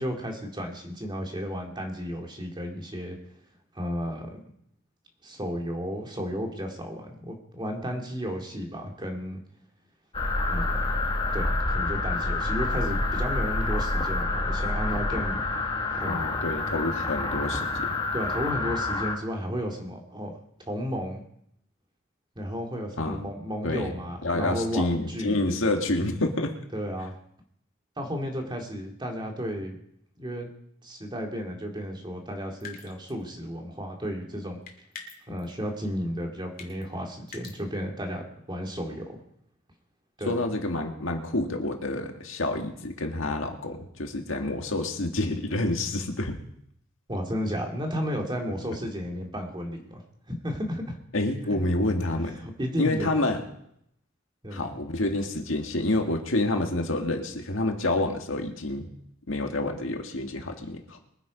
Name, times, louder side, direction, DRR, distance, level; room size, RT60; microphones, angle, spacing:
voice 1, 0.0-3.2 3.7-4.4 5.2-9.4 10.4-10.9 11.3-15.4 15.9-16.2 18.1-20.4 20.7-21.2 22.4-25.4 26.7-27.1 28.0-29.8 30.2-30.5 30.8-34.6 35.3-39.2 40.2-40.5 47.1-51.0 51.5-51.6 52.3-53.2 54.4-54.8, equal, 25° right, 1 dB, 2.6 m, -33 dB
sound 1, 10.1-19.2, left 2 dB, 25° left, 1.7 m, -28 dB
voice 2, 16.1-18.0 23.0-23.2 23.6-23.9 24.2-26.5 35.3-35.4 40.3-46.4 51.1-52.4 52.8-53.4 54.5-58.9 59.3-61.0, left 2 dB, 70° left, 3 dB, 1.9 m, -28 dB
sound 2, 32.6-33.2 34.7-35.4 36.6-36.8 37.3-37.6, left 5 dB, 45° left, 2.7 m, -43 dB
23.0 x 8.5 x 5.2 m, 0.71 s
head